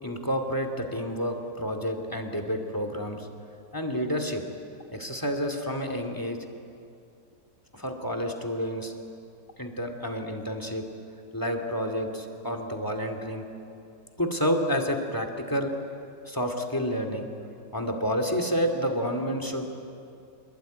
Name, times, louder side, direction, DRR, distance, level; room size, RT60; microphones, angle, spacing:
voice 1, 0.0-3.3 3.7-4.4 4.9-6.4 7.7-9.0 9.6-10.8 11.3-13.4 14.2-15.7 16.3-17.3 17.7-19.7, equal, 10° left, 6 dB, 2.4 m, -29 dB
26.5 x 22.0 x 9.4 m, 2.5 s
omnidirectional pair, 1.9 m